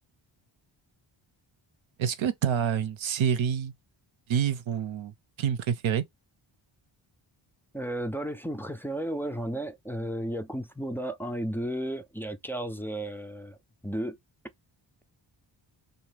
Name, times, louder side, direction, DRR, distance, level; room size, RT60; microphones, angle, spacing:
voice 1, 2.0-3.7 4.3-5.1 5.4-6.0, right 8 dB, 65° right, 0.6 m, -27 dB
voice 2, 7.7-13.6 13.8-14.2, right 1 dB, 5° left, 0.3 m, -33 dB
2.6 x 2.5 x 3.1 m
wide cardioid pair, 80°, 50 cm